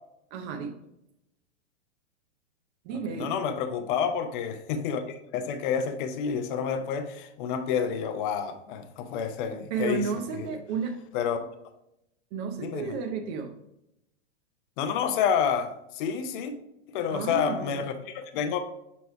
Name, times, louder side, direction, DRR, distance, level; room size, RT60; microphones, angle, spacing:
voice 1, 0.3-0.8 2.8-3.4 9.7-11.0 12.3-13.6 17.1-17.8, right 5 dB, 35° right, 0.6 m, -32 dB
voice 2, 3.2-10.1 10.4-10.5 11.1-11.4 12.6-12.9 14.8-16.5 16.9-18.6, left 7 dB, 45° left, 0.6 m, -29 dB
7.0 x 3.1 x 4.5 m
hypercardioid pair, 135°, 35 cm